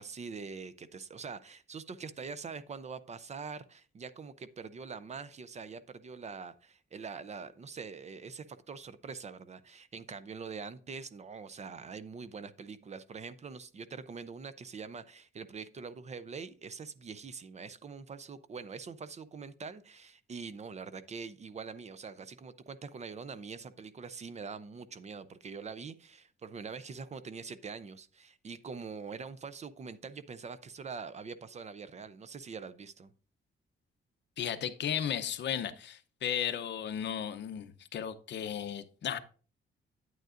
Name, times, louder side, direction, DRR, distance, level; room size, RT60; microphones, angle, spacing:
voice 1, 0.0-33.1, right 5 dB, 35° right, 0.5 m, -44 dB
voice 2, 34.4-39.2, left 9 dB, 60° left, 0.7 m, -35 dB
9.1 x 9.1 x 2.5 m
wide cardioid pair, 155°, 21 cm